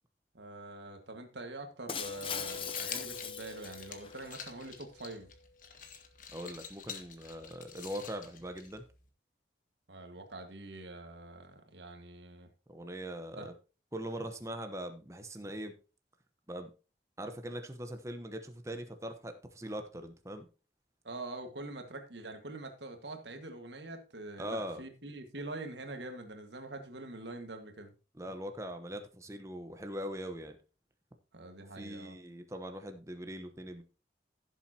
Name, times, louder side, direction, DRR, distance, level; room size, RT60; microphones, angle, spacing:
voice 1, 0.3-5.3 9.9-12.5 13.3-13.5 21.0-27.9 31.3-32.2, right 2 dB, 75° right, 1.8 m, -45 dB
Shatter, 1.9-4.3, left 7 dB, 30° left, 0.8 m, -40 dB
Mallet percussion, 2.0-5.8, left 2 dB, 65° left, 0.8 m, -48 dB
sound 1, 2.1-9.1, left 6 dB, 45° left, 1.4 m, -49 dB
voice 2, 6.3-8.8 12.7-13.5 13.9-15.7 16.5-16.7 17.2-20.5 24.4-24.8 28.1-30.6 31.7-33.8, equal, 15° right, 1.0 m, -41 dB
15.5 x 7.3 x 2.9 m
head